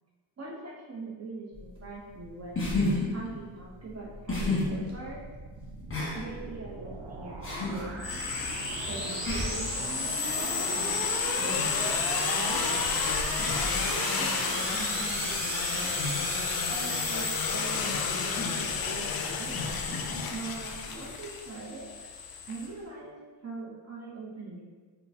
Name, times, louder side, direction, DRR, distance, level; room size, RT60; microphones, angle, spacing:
voice 1, 0.4-2.6 3.1-5.2 6.1-7.9 8.9-11.0 11.4-12.9 13.9-15.9 16.7-19.5 20.3-21.9 22.5-23.2 23.4-24.7, right 2 dB, 35° right, -4 dB, 0.7 m, -42 dB
sound 1, 1.5-21.2, left 2 dB, 25° left, 1.2 m, -36 dB
sound 2, 3.9-22.4, right 3 dB, 65° right, 0.6 m, -38 dB
sound 3, 8.0-22.7, left 6 dB, 50° left, 0.4 m, -31 dB
3.7 x 2.2 x 2.7 m, 1.4 s
supercardioid pair, 40°, 48 cm